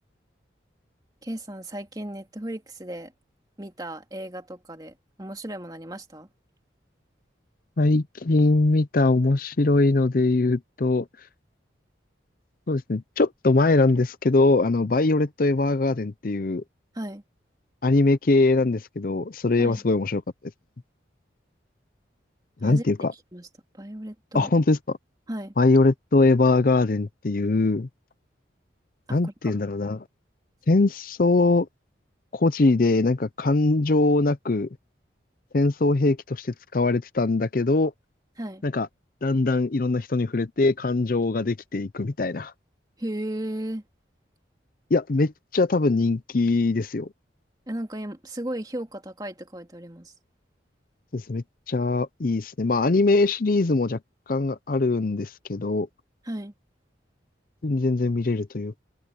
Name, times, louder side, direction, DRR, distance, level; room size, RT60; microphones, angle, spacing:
voice 1, 1.2-3.1 3.6-6.3 16.9-17.2 19.6-19.8 22.6-23.5 23.7-24.5 25.3-25.5 29.1-29.6 38.4-38.6 43.0-43.8 47.7-50.1 56.2-56.5, right 1 dB, 20° right, 2.5 m, -35 dB
voice 2, 7.8-11.1 12.7-16.6 17.8-20.2 22.6-23.1 24.3-24.8 25.6-27.9 29.1-30.0 30.7-31.7 32.3-34.7 35.5-37.9 38.6-38.9 39.2-42.5 44.9-47.1 51.1-54.0 54.3-55.9 57.6-58.8, left 2 dB, 50° left, 0.6 m, -22 dB
head